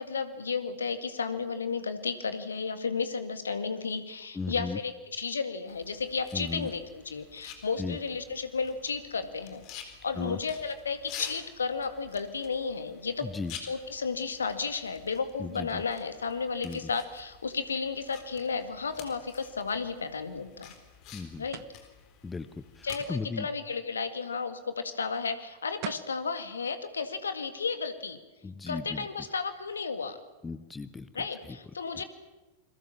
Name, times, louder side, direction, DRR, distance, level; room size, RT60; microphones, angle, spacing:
voice 1, 0.0-13.3 13.6-20.7 21.4-21.6 22.8-28.2 28.7-30.2 31.1-32.0, left 5 dB, 70° left, 10 dB, 2.0 m, -33 dB
voice 2, 4.3-4.8 6.3-6.7 7.8-8.0 10.1-10.4 13.2-13.5 15.4-15.8 16.6-16.9 21.1-21.5 22.2-23.5 28.4-29.1 30.4-31.6 32.0-32.1, left 4 dB, 15° left, 13 dB, 1.0 m, -37 dB
sound 1, 5.7-23.0, left 8 dB, 40° left, 4.0 m, -49 dB
sound 2, 21.5-21.8 25.5-25.6 25.8-26.2, right 19 dB, 45° right, 0.8 m, -40 dB
28.0 x 22.0 x 7.2 m, 1.1 s
figure-of-eight pair, 90°, 0 cm